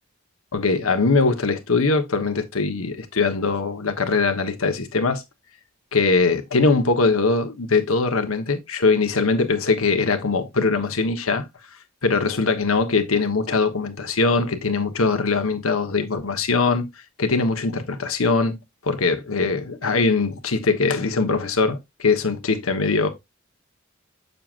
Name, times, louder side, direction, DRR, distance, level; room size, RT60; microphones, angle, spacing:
voice 1, 0.5-5.2 5.9-11.5 12.0-16.9 17.2-18.6 18.8-23.1, left 4 dB, 80° left, 1.2 m, -21 dB
7.5 x 6.6 x 2.5 m
head